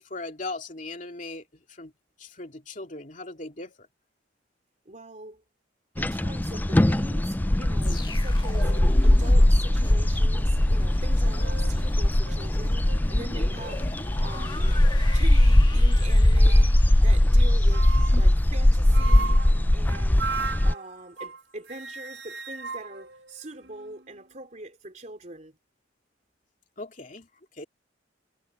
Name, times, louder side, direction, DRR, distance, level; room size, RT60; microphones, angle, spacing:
voice 1, 0.0-1.9 2.2-3.8 18.1-18.2 26.8-27.3 27.5-27.6, left 2 dB, 40° left, 2.8 m, -38 dB
voice 2, 4.8-5.4 6.0-8.7 9.0-13.9 14.2-14.8 15.1-16.7 17.0-17.9 18.2-19.4 19.7-20.3 20.6-25.5, right 2 dB, 40° right, 3.2 m, -43 dB
sound 1, 6.0-20.7, left 1 dB, 10° left, 0.3 m, -20 dB
sound 2, 7.8-18.9 19.2-19.5, left 2 dB, 25° left, 1.7 m, -40 dB
sound 3, 8.2-8.3 8.6-9.0 9.7-9.8 11.1-11.8 12.2-12.4 12.8-13.0 13.6-13.9 14.6-15.3 16.3-16.8 17.7-18.3 18.9-21.4 21.7-24.0, right 4 dB, 70° right, 4.3 m, -38 dB
head